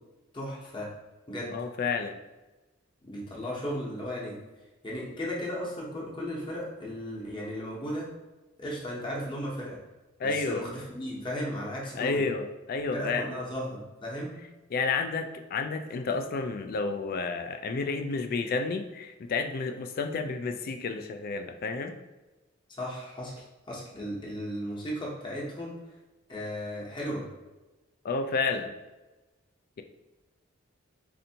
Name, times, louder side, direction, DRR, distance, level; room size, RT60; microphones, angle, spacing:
voice 1, 0.3-0.9 1.3-1.6 3.0-4.4 4.8-8.1 8.6-9.8 10.2-12.2 12.9-14.4 22.8-25.8 26.3-27.3, equal, 25° left, -5 dB, 0.8 m, -35 dB
voice 2, 1.5-2.2 10.2-10.6 12.0-13.3 14.7-22.0 28.0-28.7, left 4 dB, 45° left, 7 dB, 0.3 m, -30 dB
4.3 x 2.6 x 2.8 m, 1.1 s
head